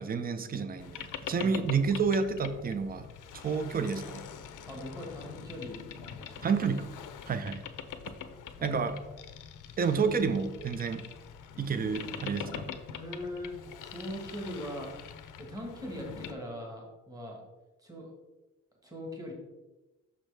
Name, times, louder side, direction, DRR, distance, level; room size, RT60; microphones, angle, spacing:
voice 1, 0.0-3.1 3.3-4.2 6.4-6.9 7.3-7.7 8.6-9.0 9.8-11.0 11.6-12.8, right 5 dB, 30° right, 10 dB, 0.5 m, -30 dB
Boat Water vehicle, 0.8-16.3, left 8 dB, 90° left, 0.6 m, -44 dB
voice 2, 4.7-5.8 6.1-6.5 8.5-8.7 13.0-14.9 15.4-17.4 17.8-18.1 18.8-19.3, left 1 dB, 10° right, -1 dB, 1.5 m, -41 dB
6.3 x 5.9 x 3.4 m, 1.1 s
wide cardioid pair, 135°, 30 cm